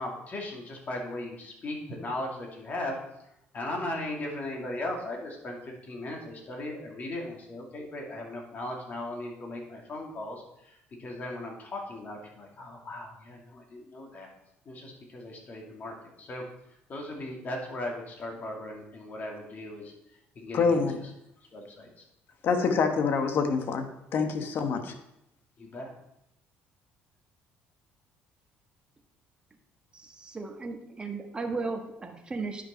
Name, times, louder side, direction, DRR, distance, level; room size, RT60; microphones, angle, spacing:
voice 1, 0.0-14.3 14.7-21.1 21.5-22.0 25.6-25.9, left 1 dB, 40° left, 0 dB, 2.4 m, -38 dB
voice 2, 20.5-20.9 22.4-24.9, left 5 dB, 55° left, 6 dB, 1.2 m, -26 dB
voice 3, 29.9-32.6, right 3 dB, 20° right, 3 dB, 1.3 m, -35 dB
9.8 x 5.7 x 4.3 m, 0.81 s
cardioid pair, 105°, 4 cm